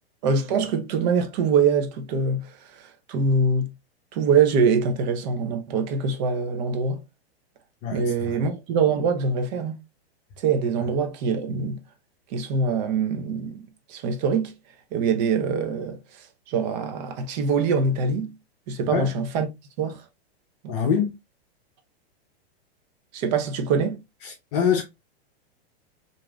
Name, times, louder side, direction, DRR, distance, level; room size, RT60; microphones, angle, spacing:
voice 1, 0.2-3.7 4.1-7.0 7.9-9.8 10.4-11.8 12.3-14.5 14.9-18.3 18.7-19.5 19.8-20.0 20.6-20.7 23.1-24.0, right 5 dB, 45° right, 0.6 m, -24 dB
voice 2, 7.8-8.4 18.9-19.1 20.7-21.1 24.2-24.8, left 7 dB, 40° left, 0.6 m, -25 dB
3.0 x 2.6 x 2.2 m
hypercardioid pair, 140°, 32 cm